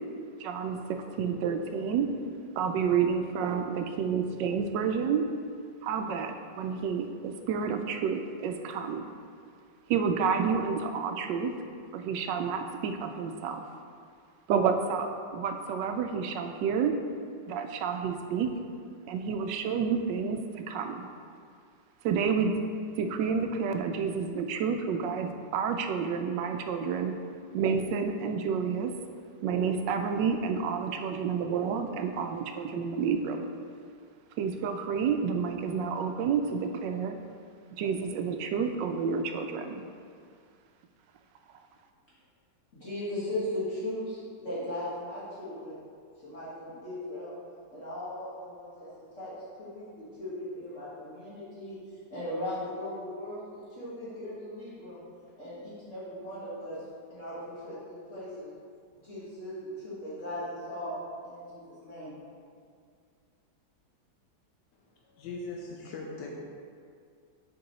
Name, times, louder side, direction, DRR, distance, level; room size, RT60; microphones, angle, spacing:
voice 1, 0.4-2.1 2.6-5.2 5.8-9.1 9.9-11.5 11.9-13.6 14.5-16.9 17.5-18.5 19.1-21.1 22.0-22.5 23.0-27.1 27.5-28.9 29.4-33.5 34.4-37.2 37.8-39.8, right 6 dB, 85° right, 6 dB, 1.2 m, -29 dB
voice 2, 42.7-45.8 46.2-47.3 47.7-48.9 49.2-49.3 49.6-51.8 52.1-55.0 55.4-56.8 57.1-58.5 59.0-61.0 61.2-62.1, left 1 dB, 45° left, -10 dB, 1.8 m, -38 dB
voice 3, 65.0-66.3, left 3 dB, 80° left, -2 dB, 1.4 m, -39 dB
6.6 x 4.6 x 4.1 m, 2.2 s
omnidirectional pair, 1.9 m